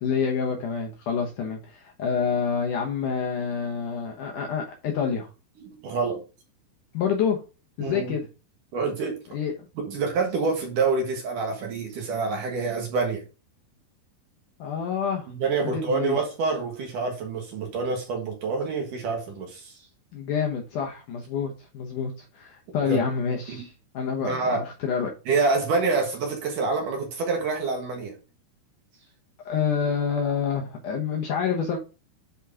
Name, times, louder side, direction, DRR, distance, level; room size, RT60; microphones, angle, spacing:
voice 1, 0.0-5.3 6.9-7.4 7.8-8.3 9.3-9.5 14.6-15.3 15.6-16.2 20.1-25.1 29.5-31.8, left 6 dB, 70° left, 2.1 m, -27 dB
voice 2, 5.6-6.2 7.8-8.1 8.7-9.2 9.9-13.2 15.3-19.8 22.8-23.0 23.5-23.6 24.2-24.6 25.3-28.1, right 4 dB, 60° right, 2.7 m, -27 dB
8.4 x 4.6 x 3.6 m
omnidirectional pair, 4.7 m